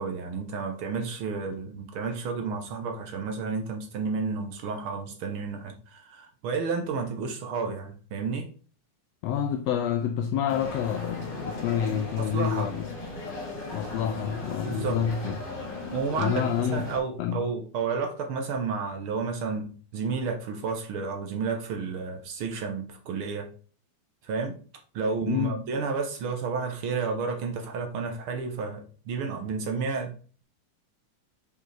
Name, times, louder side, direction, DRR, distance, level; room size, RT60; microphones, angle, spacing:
voice 1, 0.0-8.5 12.2-12.7 14.6-15.0 15.9-16.3 16.7-23.5 24.2-24.5 24.9-30.1, right 5 dB, 70° right, 1.3 m, -31 dB
voice 2, 9.2-12.9 13.7-15.4 16.2-16.9 17.2-17.4 25.3-25.6, left 8 dB, 80° left, 1.5 m, -28 dB
sound 1, 10.5-17.0, left 2 dB, 50° left, 3.8 m, -38 dB
7.7 x 4.9 x 3.3 m
omnidirectional pair, 3.4 m